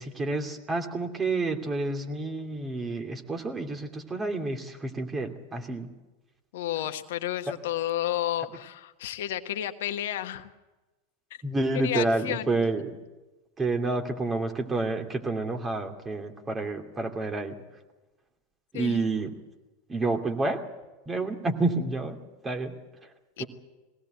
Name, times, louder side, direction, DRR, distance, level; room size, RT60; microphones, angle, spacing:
voice 1, 0.0-5.9 11.4-13.0 13.6-17.6 18.7-19.3 19.9-20.6 21.1-22.7 23.0-23.1 23.4-23.5, right 3 dB, 20° right, 4 dB, 2.7 m, -29 dB
voice 2, 6.5-10.5 11.3-11.4 11.8-12.5 18.7-19.0 23.4-23.5, left 12 dB, 70° left, 8 dB, 1.2 m, -31 dB
21.0 x 17.5 x 8.0 m, 1.1 s
hypercardioid pair, 95°, 0 cm